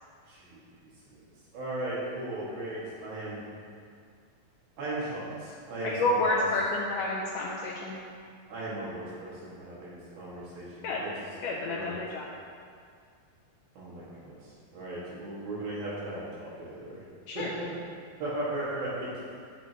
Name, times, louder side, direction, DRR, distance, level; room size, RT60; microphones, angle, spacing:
voice 1, 0.3-0.6 1.1-1.2 1.5-3.4 4.8-6.5 8.5-11.1 11.7-12.0 13.8-17.0 17.3-17.4 18.2-19.1, right 1 dB, 75° right, -8 dB, 3.9 m, -37 dB
voice 2, 5.8-8.0 10.8-11.0 11.4-12.3 17.3-17.5, left 2 dB, 80° left, -2 dB, 1.9 m, -29 dB
9.9 x 8.1 x 3.0 m, 2.2 s
omnidirectional pair, 4.4 m